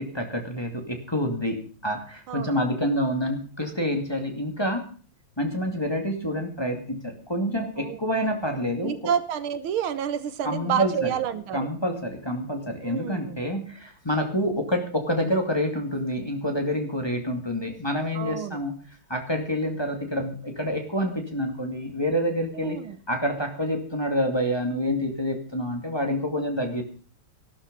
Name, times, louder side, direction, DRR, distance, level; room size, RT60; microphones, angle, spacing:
voice 1, 0.0-4.8 5.4-8.9 10.4-11.1 11.5-18.8 19.1-22.8 23.1-26.8, equal, 10° left, 3 dB, 2.3 m, -27 dB
voice 2, 7.8-8.4 8.8-11.7 12.8-13.4 18.2-18.6 22.6-23.0, right 8 dB, 80° right, 13 dB, 1.9 m, -29 dB
15.0 x 12.0 x 5.3 m, 0.40 s
omnidirectional pair, 2.3 m